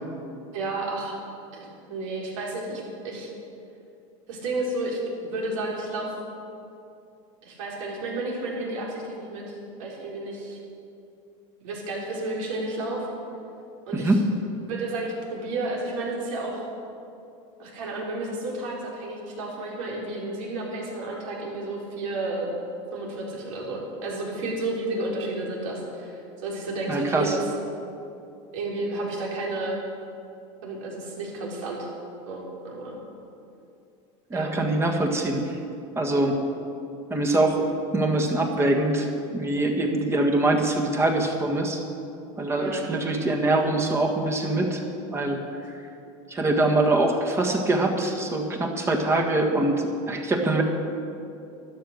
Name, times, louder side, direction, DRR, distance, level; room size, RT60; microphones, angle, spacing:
voice 1, 0.5-1.2 1.5-3.3 4.3-6.1 7.4-10.6 11.6-13.1 13.9-14.2 14.7-16.6 17.6-22.5 22.9-27.4 28.5-29.8 30.6-31.9 32.3-33.0 34.3-34.6 42.5-42.8, right 2 dB, 80° right, -3 dB, 4.2 m, -32 dB
voice 2, 13.9-14.2 26.9-27.4 34.3-35.4 35.9-36.4 37.1-37.6 37.9-39.1 39.3-41.8 42.4-44.8 45.1-45.4 46.3-50.6, right 2 dB, 15° right, 3 dB, 1.6 m, -23 dB
12.5 x 11.5 x 6.7 m, 2.7 s
supercardioid pair, 140°, 16 cm